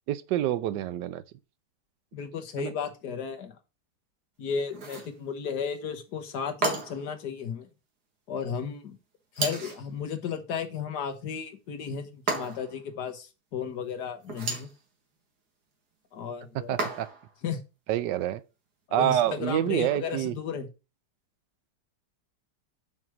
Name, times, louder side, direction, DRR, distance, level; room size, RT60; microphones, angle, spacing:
voice 1, 0.1-1.2 2.6-2.7 16.5-17.1 17.9-18.4 18.9-20.3, right 12 dB, 85° right, 1.3 m, -27 dB
voice 2, 2.1-3.5 4.4-7.7 8.3-9.0 9.4-14.7 16.1-16.9 17.4-17.6 18.9-20.7, left 6 dB, 70° left, 1.6 m, -34 dB
sound 1, 4.7-5.2 6.6-7.1 9.3-9.9 12.3-12.8 14.2-14.8 16.8-17.3, right 3 dB, 65° right, 2.2 m, -32 dB
5.9 x 4.6 x 6.1 m
omnidirectional pair, 1.9 m